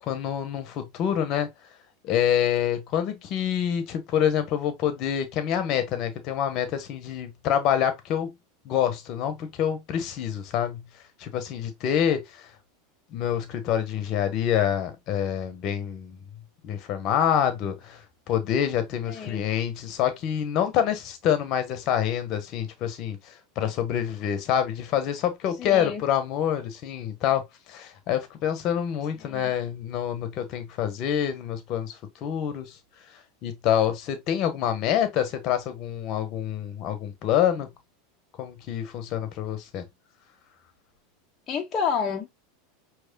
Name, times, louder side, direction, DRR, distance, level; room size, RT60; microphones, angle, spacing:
voice 1, 0.0-1.5 2.0-8.3 8.6-10.8 11.2-12.5 13.1-16.2 16.6-32.8 33.4-37.7 38.4-39.8, left 9 dB, 50° left, 1.3 m, -26 dB
voice 2, 19.1-19.4 25.6-26.0 29.2-29.5 41.5-42.4, left 6 dB, 30° left, 1.2 m, -30 dB
6.5 x 3.2 x 2.3 m
hypercardioid pair, 110°, 0 cm